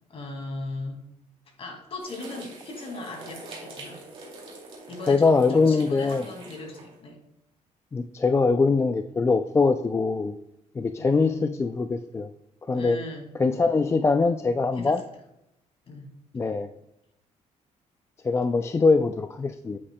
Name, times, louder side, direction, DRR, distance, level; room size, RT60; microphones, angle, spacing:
voice 1, 0.1-1.0 1.6-4.0 4.9-7.2 11.0-11.5 12.7-13.3 14.7-15.1 15.9-16.1, left 2 dB, 45° left, 2 dB, 2.2 m, -38 dB
sound 1, 2.0-6.9, right 2 dB, 40° right, 2.4 m, -44 dB
voice 2, 5.1-6.2 7.9-10.4 10.8-12.3 12.7-13.0 13.4-15.0 16.3-16.7 18.2-19.8, left 4 dB, 20° left, 8 dB, 0.3 m, -22 dB
8.6 x 8.2 x 2.2 m, 0.80 s
cardioid pair, 130°, 14 cm